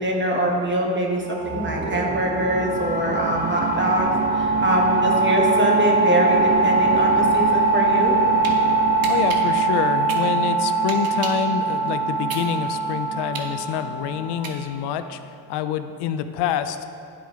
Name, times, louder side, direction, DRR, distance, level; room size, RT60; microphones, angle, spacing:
voice 1, 0.0-4.1 4.3-8.1, right 1 dB, 30° right, -1 dB, 1.5 m, -23 dB
sound 1, 1.3-6.1, right 1 dB, 10° left, 1.0 m, -36 dB
sound 2, 1.3-14.7, right 3 dB, 85° right, 1.5 m, -22 dB
sound 3, 8.1-8.6 9.0-11.5 11.9-15.0, right 5 dB, 60° right, 1.0 m, -35 dB
voice 2, 9.1-16.8, left 9 dB, 85° left, 11 dB, 0.5 m, -27 dB
11.0 x 4.7 x 3.1 m, 2.5 s
cardioid pair, 75°, 40 cm